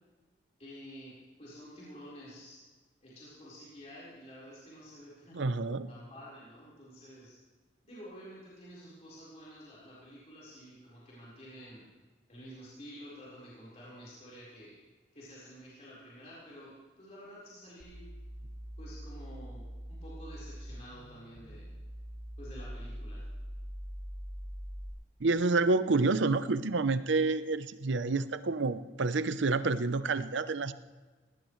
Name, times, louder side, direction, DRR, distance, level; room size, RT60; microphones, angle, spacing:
voice 1, 0.6-2.6 3.0-5.5 5.9-7.4 7.9-11.9 12.3-14.7 15.1-18.0 18.8-19.6 19.9-21.7 22.4-23.2, equal, 35° left, -8 dB, 4.4 m, -50 dB
voice 2, 5.3-5.9 25.2-30.7, right 3 dB, 85° right, 13 dB, 0.7 m, -28 dB
sound 1, 17.8-24.9, equal, 15° right, 3.4 m, -43 dB
19.5 x 17.5 x 3.2 m, 1.3 s
head